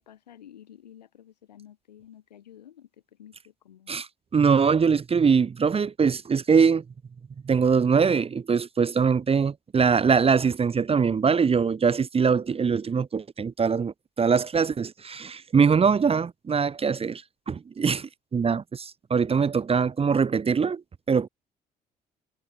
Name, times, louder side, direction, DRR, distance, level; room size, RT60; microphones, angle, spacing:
voice 1, 0.0-4.0, left 10 dB, 80° left, 3.4 m, -51 dB
voice 2, 3.9-6.8 7.4-20.8 21.1-21.3, right 6 dB, 30° right, 0.8 m, -23 dB
figure-of-eight pair, 45°, 21 cm